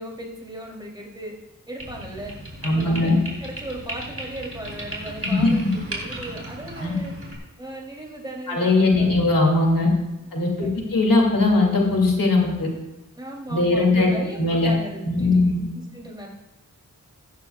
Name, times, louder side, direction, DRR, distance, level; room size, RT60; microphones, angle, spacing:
voice 1, 0.0-1.4 1.7-7.1 7.6-9.1 10.4-10.8 13.2-16.3, right 1 dB, 15° right, -3 dB, 2.9 m, -37 dB
sound 1, 1.8-7.4, right 1 dB, 40° right, 3.1 m, -36 dB
voice 2, 2.6-3.2 5.2-5.7 6.8-6.9 8.5-9.9 10.3-12.7 13.5-14.7 15.0-15.6, left 2 dB, 80° left, -1 dB, 2.4 m, -20 dB
16.0 x 12.5 x 2.3 m, 0.99 s
wide cardioid pair, 60°, 33 cm